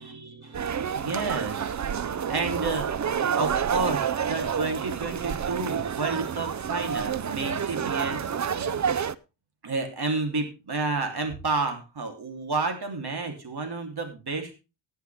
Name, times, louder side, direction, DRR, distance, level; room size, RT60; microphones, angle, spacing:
voice 1, 0.0-2.9 3.4-8.8 9.6-14.5, right 3 dB, 55° right, 5 dB, 3.3 m, -31 dB
sound 1, 0.5-9.1, right 7 dB, 40° right, 0.6 m, -29 dB
19.0 x 8.0 x 3.5 m, 0.29 s
wide cardioid pair, 95°, 45 cm